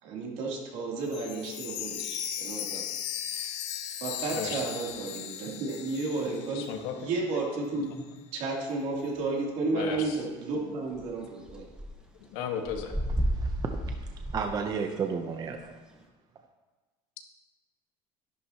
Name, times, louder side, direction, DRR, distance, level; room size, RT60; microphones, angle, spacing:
voice 1, 0.0-2.8 3.3-3.5 4.0-6.6 6.9-8.0 8.3-11.6, right 3 dB, 60° right, 3.0 m, -32 dB
Chime, 1.1-7.0 7.3-7.4 8.0-8.1, left 10 dB, 60° left, 0.9 m, -37 dB
voice 2, 4.3-4.7 6.5-7.1 9.7-10.2 12.3-12.9, left 7 dB, 80° left, 1.5 m, -35 dB
sound 1, 10.9-11.0 11.4-11.9 12.2-14.5 15.6-15.7, right 1 dB, 5° right, 1.3 m, -31 dB
voice 3, 13.3-15.7, right 6 dB, 30° right, 0.7 m, -33 dB
12.0 x 11.0 x 2.9 m
cardioid pair, 145°, 13 cm